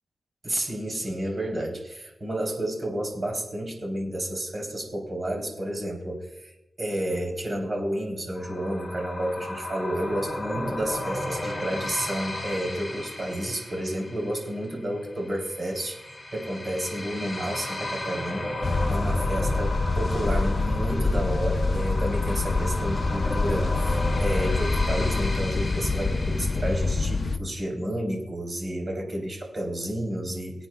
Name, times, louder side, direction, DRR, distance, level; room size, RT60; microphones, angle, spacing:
voice 1, 0.4-18.5 18.9-30.7, right 1 dB, 40° right, 0 dB, 3.4 m, -31 dB
sound 1, 8.4-27.0, left 1 dB, 10° left, 3.2 m, -35 dB
sound 2, 18.6-27.4, left 3 dB, 45° left, 0.7 m, -26 dB
24.5 x 8.7 x 2.3 m, 0.92 s
wide cardioid pair, 125°, 0 cm